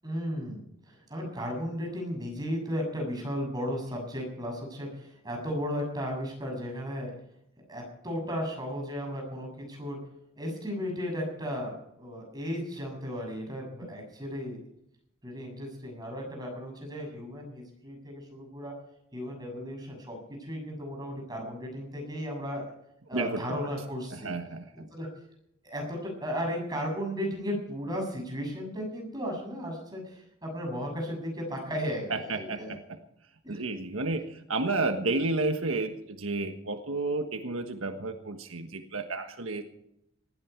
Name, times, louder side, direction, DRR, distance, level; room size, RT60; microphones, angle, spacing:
voice 1, 0.0-0.6 0.9-7.1 7.7-10.0 10.4-14.6 15.2-18.7 19.1-22.6 23.1-24.4 24.9-25.1 25.6-32.7 33.4-33.6, equal, 20° right, 1 dB, 7.2 m, -35 dB
voice 2, 24.1-24.9 32.1-33.0 33.5-39.6, right 3 dB, 85° right, 6 dB, 1.5 m, -31 dB
19.0 x 14.5 x 4.6 m, 0.75 s
head